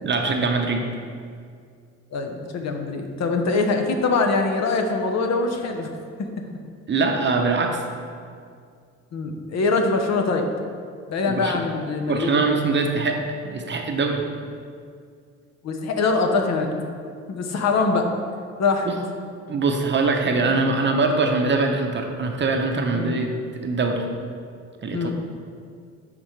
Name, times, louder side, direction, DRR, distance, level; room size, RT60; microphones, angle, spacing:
voice 1, 0.0-0.9 6.9-7.8 11.3-11.6 12.1-14.3 18.9-19.0 19.5-24.1 24.8-25.1, right 3 dB, 40° right, 3 dB, 0.7 m, -23 dB
voice 2, 2.1-5.9 6.2-6.3 9.1-10.5 11.1-12.6 15.6-16.8 17.3-18.1 18.6-18.9 20.3-20.5 22.9-23.2 24.9-25.1, left 3 dB, 60° left, 4 dB, 0.8 m, -23 dB
9.9 x 3.8 x 3.2 m, 2.2 s
cardioid pair, 90°, 30 cm